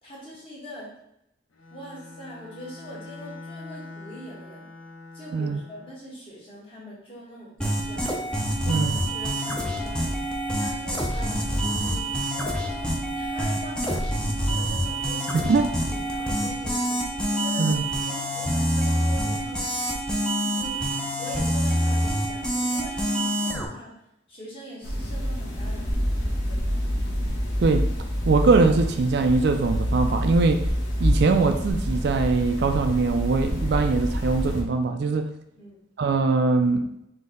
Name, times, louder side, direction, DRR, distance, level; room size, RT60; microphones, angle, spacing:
voice 1, 0.0-0.9 1.7-4.7 5.1-8.3 8.6-10.1 10.6-15.5 15.9-17.8 18.1-19.7 20.3-20.8 21.2-23.9 24.3-26.8 35.6-35.8, equal, 25° left, -6 dB, 1.3 m, -43 dB
Bowed string instrument, 1.5-6.0, left 3 dB, 80° left, 0.6 m, -43 dB
sound 1, 7.6-23.7, equal, 5° left, 0.5 m, -26 dB
voice 2, 15.3-15.7 17.6-17.8 27.6-27.9 28.3-30.6 31.0-35.3 36.0-36.9, right 3 dB, 55° right, 7 dB, 0.3 m, -22 dB
sound 2, 24.8-34.6, equal, 55° left, 1.5 m, -27 dB
4.0 x 2.8 x 3.8 m, 0.80 s
head